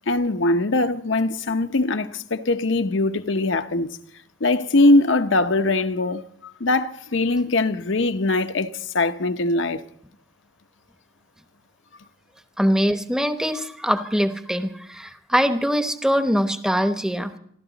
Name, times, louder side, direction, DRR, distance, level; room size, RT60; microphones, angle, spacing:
voice 1, 0.1-4.0 4.4-6.2 6.6-9.8, left 2 dB, 70° left, 0.8 m, -21 dB
voice 2, 12.6-17.3, equal, 5° right, 0.9 m, -22 dB
27.5 x 12.5 x 4.0 m
head